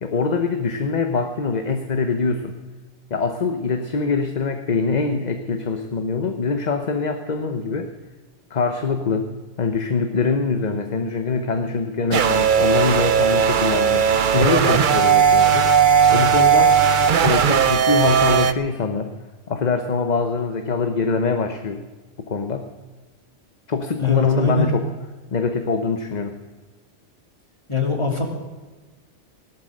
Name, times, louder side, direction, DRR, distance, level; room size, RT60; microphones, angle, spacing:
voice 1, 0.0-2.6 3.1-7.9 8.5-9.3 9.6-15.7 16.1-16.8 17.2-19.1 19.5-21.8 22.3-22.7 23.7-24.8 25.3-26.4, left 4 dB, 40° left, 7 dB, 1.0 m, -23 dB
sound 1, 12.1-18.5, right 7 dB, 50° right, 0.8 m, -17 dB
voice 2, 24.0-24.7 27.7-28.2, left 4 dB, 25° left, 1 dB, 2.8 m, -21 dB
16.5 x 12.0 x 6.5 m, 1.3 s
omnidirectional pair, 1.2 m